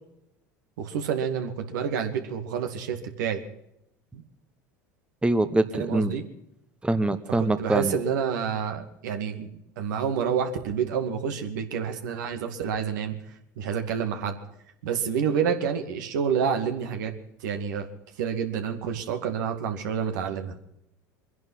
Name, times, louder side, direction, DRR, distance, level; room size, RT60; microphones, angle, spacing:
voice 1, 0.8-3.4 4.1-4.2 5.7-6.3 7.4-9.5 9.8-13.2 13.6-14.4 14.8-17.1 17.4-17.9 18.2-20.6, right 7 dB, 75° right, 6 dB, 2.3 m, -28 dB
voice 2, 5.2-6.1 6.8-7.9, right 2 dB, 10° right, 11 dB, 1.1 m, -24 dB
23.0 x 11.0 x 5.7 m, 0.79 s
hypercardioid pair, 80°, 10 cm